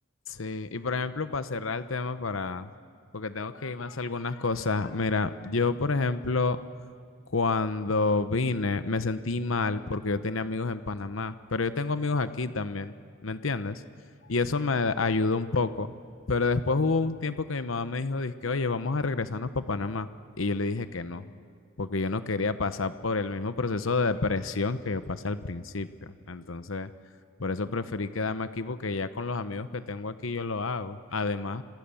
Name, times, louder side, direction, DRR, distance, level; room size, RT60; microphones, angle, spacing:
voice 1, 0.3-2.7 3.1-6.6 7.3-12.9 13.2-13.8 14.2-15.9 16.3-20.1 20.4-21.3 21.8-26.9 27.4-31.6, left 3 dB, 80° left, 12 dB, 0.9 m, -29 dB
27.0 x 26.0 x 7.1 m, 2.2 s
head